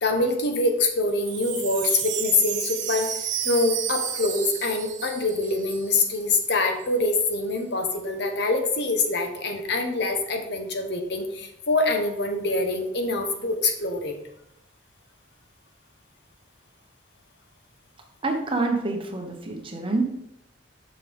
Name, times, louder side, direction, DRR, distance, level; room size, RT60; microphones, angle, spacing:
voice 1, 0.0-3.1 3.4-14.2, left 2 dB, 65° left, 5 dB, 1.1 m, -25 dB
Wind chime, 1.0-6.2 6.5-6.6 6.8-7.3, right 9 dB, 80° right, 1.0 m, -32 dB
voice 2, 18.2-20.0, right 2 dB, 30° right, 3 dB, 1.0 m, -27 dB
7.5 x 6.1 x 3.5 m, 0.78 s
head